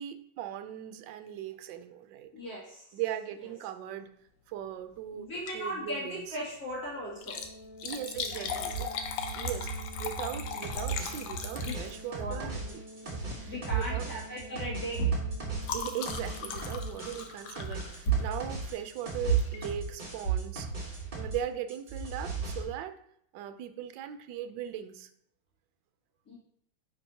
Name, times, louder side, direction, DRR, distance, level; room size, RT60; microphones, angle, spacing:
voice 1, 0.0-2.3 2.9-4.1 4.5-5.3 5.5-6.3 7.8-8.9 9.3-9.7 10.0-12.8 13.1-14.0 15.7-23.0 23.3-25.1, right 10 dB, 75° right, 9 dB, 1.2 m, -39 dB
voice 2, 2.3-2.8 5.1-7.4 8.3-8.4 11.6-11.7 12.2-12.6 13.4-15.1 26.3-26.4, right 3 dB, 45° left, -6 dB, 2.7 m, -35 dB
Liquid, 5.3-5.7 6.1-6.2 7.1-12.2 13.2-13.5 13.8-14.1 14.4-18.4 19.4-19.6 20.2-20.3 20.5-20.6, left 6 dB, 75° left, 1.4 m, -39 dB
Organ, 6.9-17.8, equal, 15° right, 2.8 m, -50 dB
sound 1, 10.6-21.4 21.7-22.6, right 2 dB, 30° right, 1.0 m, -39 dB
9.7 x 4.6 x 2.8 m, 0.69 s
omnidirectional pair, 2.2 m